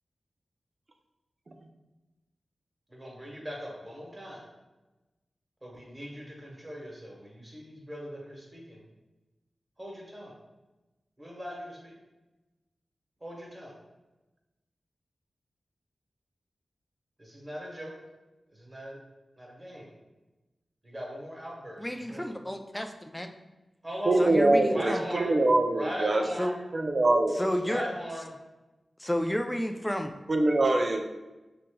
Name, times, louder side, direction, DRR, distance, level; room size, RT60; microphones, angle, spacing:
voice 1, 2.9-4.4 5.6-8.8 9.8-10.3 11.2-11.9 13.2-13.7 17.2-18.0 18.5-19.0 19.4-19.9 20.8-22.3 23.8-24.3 24.7-25.3 25.7-26.6 27.6-28.3, equal, 25° right, -2 dB, 1.2 m, -39 dB
voice 2, 21.8-23.3 24.2-25.0 26.4-26.5 27.4-27.8 29.0-30.1, equal, 10° left, 5 dB, 0.4 m, -31 dB
voice 3, 24.1-26.2 26.7-27.4 30.3-31.0, right 2 dB, 55° right, 4 dB, 0.5 m, -24 dB
5.0 x 2.8 x 2.2 m, 1.1 s
cardioid pair, 45°, 0 cm